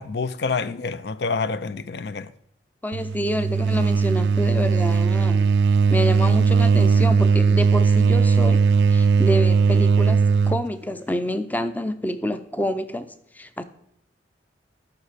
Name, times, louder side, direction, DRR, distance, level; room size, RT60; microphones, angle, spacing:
voice 1, 0.0-2.3, left 4 dB, 65° left, 0.5 m, -27 dB
voice 2, 2.8-5.5 5.9-13.6, equal, 10° left, 0.5 m, -28 dB
sound 1, 2.9-10.7, right 5 dB, 70° right, 0.3 m, -18 dB
13.5 x 5.7 x 5.0 m
head